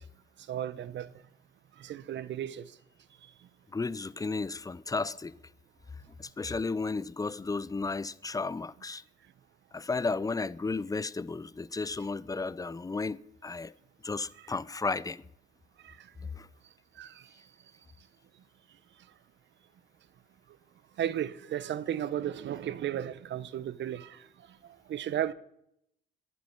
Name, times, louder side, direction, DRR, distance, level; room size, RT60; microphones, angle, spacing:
voice 1, 0.5-1.1 1.8-2.6 15.8-15.9 17.0-17.1 21.0-24.2 24.9-25.3, right 11 dB, 65° right, 1.0 m, -34 dB
voice 2, 3.7-5.3 6.2-9.0 9.7-13.7 14.0-15.2 16.3-16.5, left 3 dB, 15° left, 0.6 m, -33 dB
11.0 x 10.5 x 9.8 m
cardioid pair, 90°, 20 cm